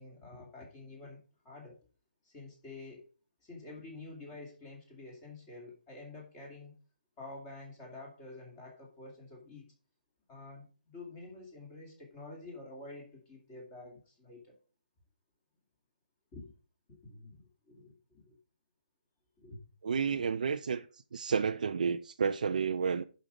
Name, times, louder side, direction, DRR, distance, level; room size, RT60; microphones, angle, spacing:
voice 1, 0.0-1.8 2.2-3.1 3.4-6.8 7.2-9.7 10.3-14.6 16.3-16.5 16.9-17.4 17.7-18.4 19.4-19.6 20.1-20.2, left 2 dB, 15° left, 2.4 m, -49 dB
voice 2, 19.8-20.9 21.1-23.0, right 6 dB, 50° right, 0.5 m, -31 dB
11.0 x 5.2 x 5.0 m
hypercardioid pair, 170°, 5 cm